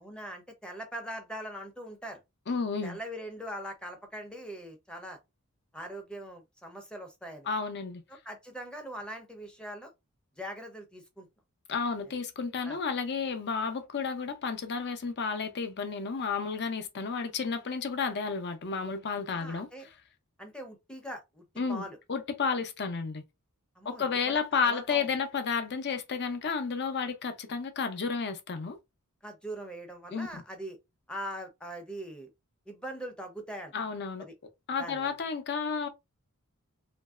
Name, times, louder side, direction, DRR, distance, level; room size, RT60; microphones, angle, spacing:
voice 1, 0.0-2.2 2.8-5.2 5.7-7.5 8.2-9.9 10.4-11.3 12.6-12.8 19.3-19.9 20.4-21.4 21.7-22.0 23.8-25.1 29.2-30.8 31.1-32.3 32.7-33.7 34.2-34.3 34.8-35.1, right 1 dB, 5° left, 0.6 m, -41 dB
voice 2, 2.5-3.0 7.5-8.0 11.7-19.9 21.6-23.2 23.8-28.8 30.1-30.3 33.7-34.2 34.7-35.9, left 5 dB, 50° left, 0.6 m, -32 dB
3.0 x 2.6 x 2.3 m
head